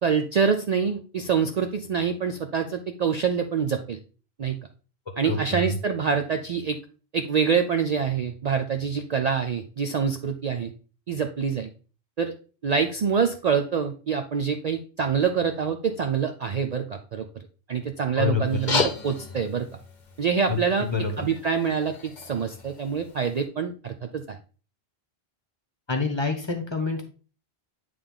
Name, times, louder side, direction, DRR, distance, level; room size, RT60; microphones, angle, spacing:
voice 1, 0.0-4.0 4.4-4.6 5.2-6.8 7.1-10.7 11.1-11.7 12.2-12.3 12.6-17.3 17.7-19.7 20.2-20.9 21.2-24.2, right 6 dB, 50° right, 6 dB, 0.5 m, -25 dB
voice 2, 5.2-5.7 18.2-18.6 20.5-21.3 25.9-27.0, left 4 dB, 25° left, 4 dB, 1.1 m, -27 dB
sound 1, 18.5-23.4, left 4 dB, 50° left, 1.0 m, -33 dB
8.8 x 3.4 x 3.7 m, 0.37 s
omnidirectional pair, 1.0 m